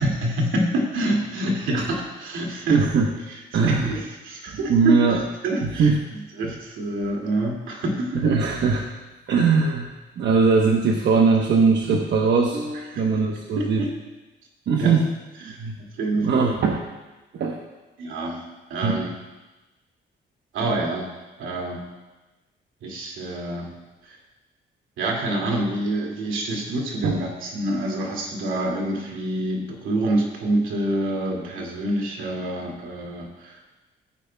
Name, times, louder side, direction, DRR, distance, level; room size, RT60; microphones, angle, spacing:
voice 1, 0.0-2.8 3.3-5.0 5.4-5.9 6.4-8.2 12.9-13.0 13.5-13.9 14.8-14.9 15.5-15.6 16.0-16.5 18.0-18.4 18.7-19.1 20.5-21.1 21.4-21.9 22.8-23.7 24.0-24.2 25.0-33.7, right 1 dB, 85° right, -1 dB, 2.3 m, -27 dB
voice 2, 2.7-3.1 3.5-4.0 4.7-5.2 5.6-6.0 8.1-8.8 9.3-9.9 10.2-13.9 14.7-15.1 15.6-15.8 16.2-16.9 17.3-17.6 18.8-19.0 27.0-27.2, right 4 dB, 65° right, 1 dB, 1.0 m, -20 dB
15.5 x 9.2 x 2.3 m, 1.1 s
cardioid pair, 90°, 20 cm